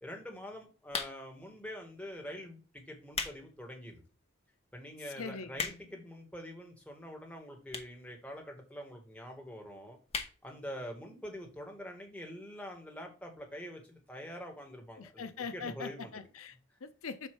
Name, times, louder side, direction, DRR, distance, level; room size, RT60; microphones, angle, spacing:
voice 1, 0.0-4.0 4.7-10.0 10.4-15.3 15.5-16.1, equal, 5° left, 1.4 m, -45 dB
sound 1, 0.9-1.4 2.2-2.4 2.9-3.4 3.8-3.9 4.6-4.7 4.8-4.9 5.2-6.0 6.8-6.9 7.7-8.0 8.3-8.4 8.6-8.7 8.9-9.0 9.3-9.6 10.1-10.4 10.8-10.9 11.0-11.1, left 5 dB, 30° left, 0.7 m, -37 dB
voice 2, 5.0-5.8 15.0-17.3, left 5 dB, 85° left, 0.7 m, -42 dB
7.9 x 2.7 x 6.0 m
head